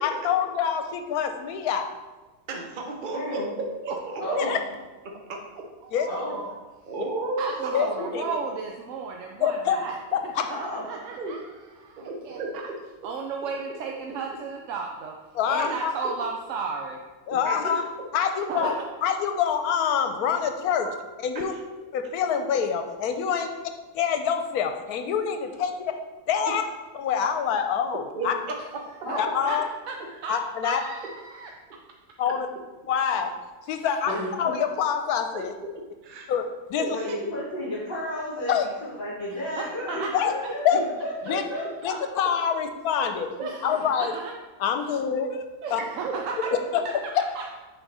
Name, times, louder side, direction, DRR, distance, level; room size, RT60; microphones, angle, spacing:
voice 1, 0.0-1.9 4.4-4.6 5.9-6.1 7.7-8.4 9.4-9.8 10.1-10.4 15.3-15.9 17.3-17.8 18.1-18.7 19.0-20.9 21.2-21.5 21.9-23.5 23.9-25.7 26.3-26.6 27.0-28.3 29.2-29.6 30.3-30.8 32.2-32.5 32.9-33.3 33.6-35.5 36.3-36.9 38.5-38.7 40.1-40.3 40.6-40.8 41.3-41.4 41.8-43.3 43.6-44.1 44.6-45.3 45.7-45.8 46.7-46.8, left 8 dB, 80° left, 6 dB, 1.1 m, -26 dB
voice 2, 2.5-4.2 5.3-5.4 6.8-7.8 11.2-11.3 12.0-12.6 14.1-14.2 15.6-15.8 17.4-17.6 21.3-21.5 23.3-23.4 28.1-28.3 35.3-35.4 35.7-36.3 36.8-37.2 40.7-40.9 45.8-46.4, right 3 dB, 40° right, 2 dB, 0.9 m, -33 dB
voice 3, 3.1-3.5 4.2-4.6 6.1-6.4 10.5-10.8 17.6-17.8 20.8-20.9 29.0-29.3 34.1-34.5 36.9-38.5 38.8-41.9 45.1-45.3 46.5-46.6, left 1 dB, 35° left, -7 dB, 1.7 m, -32 dB
voice 4, 5.8-6.6 7.4-9.9 10.4-12.6 13.0-15.2 15.5-17.0 18.5-18.7 29.1-29.2 29.5-29.6 29.9-30.3 30.6-31.5 39.5-40.1 40.4-40.5 43.4-44.3 45.6-46.5 46.8-46.9 47.4-47.5, right 5 dB, 65° right, 1 dB, 0.9 m, -34 dB
6.3 x 4.3 x 4.7 m, 1.2 s
omnidirectional pair, 1.6 m